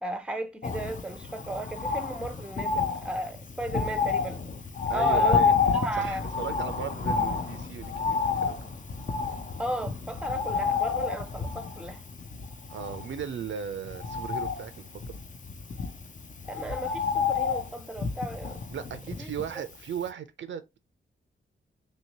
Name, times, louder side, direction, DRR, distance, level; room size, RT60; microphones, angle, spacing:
voice 1, 0.0-4.4 4.9-5.4 5.7-6.3 9.6-12.0 16.5-18.6 19.2-19.3, right 1 dB, 5° right, 0.6 m, -34 dB
Bird, 0.6-19.7 20.1-20.2, left 5 dB, 40° left, 0.6 m, -30 dB
voice 2, 4.9-5.5 5.9-8.7 12.7-15.2 18.7-20.6, right 8 dB, 65° right, 0.5 m, -37 dB
3.0 x 2.8 x 2.9 m
cardioid pair, 55°, 21 cm